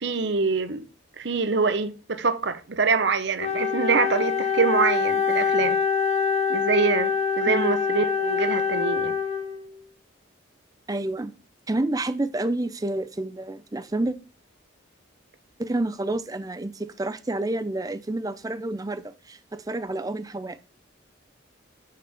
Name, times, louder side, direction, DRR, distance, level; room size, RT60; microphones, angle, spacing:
voice 1, 0.0-0.8 1.2-5.8 6.5-9.1, right 4 dB, 60° right, 0.7 m, -25 dB
Wind instrument woodwind instrument, 3.4-9.8, left 5 dB, 30° left, 0.8 m, -25 dB
voice 2, 10.9-11.3 11.7-14.1 15.6-20.6, right 2 dB, 20° right, 0.4 m, -29 dB
7.1 x 6.6 x 3.4 m
head